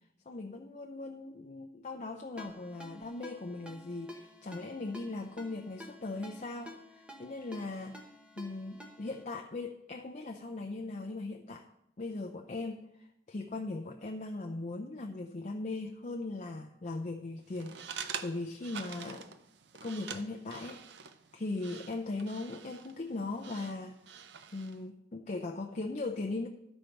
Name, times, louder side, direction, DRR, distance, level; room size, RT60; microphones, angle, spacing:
voice 1, 0.3-8.0 8.4-11.7 12.0-19.3 19.8-24.0 24.5-26.5, left 2 dB, 45° left, 3 dB, 0.5 m, -39 dB
Ringtone, 2.4-9.2, left 1 dB, 5° right, 1.0 m, -51 dB
sound 1, 17.5-24.8, right 7 dB, 85° right, 0.5 m, -46 dB
12.0 x 4.4 x 5.2 m, 0.85 s
head